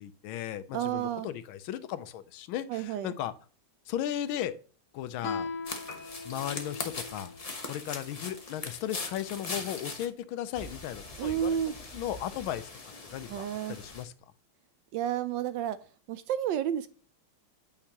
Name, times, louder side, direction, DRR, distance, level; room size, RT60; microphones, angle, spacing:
voice 1, 0.0-3.3 3.9-4.5 4.9-5.5 6.2-7.3 7.7-11.6 11.9-12.7 13.1-14.1, left 11 dB, 85° left, 13 dB, 1.4 m, -36 dB
voice 2, 0.7-1.3 2.7-3.1 11.2-11.7 13.3-13.8 14.9-15.8 16.1-16.9, right 10 dB, 75° right, 14 dB, 1.1 m, -31 dB
Guitar, 5.2-8.5, left 4 dB, 55° left, 0.9 m, -40 dB
sound 1, 5.6-10.1 10.5-14.0, left 3 dB, 35° left, 0.5 m, -41 dB
Piano, 5.8-13.8, left 4 dB, 20° left, 1.3 m, -59 dB
8.7 x 5.8 x 2.9 m, 0.40 s
omnidirectional pair, 2.2 m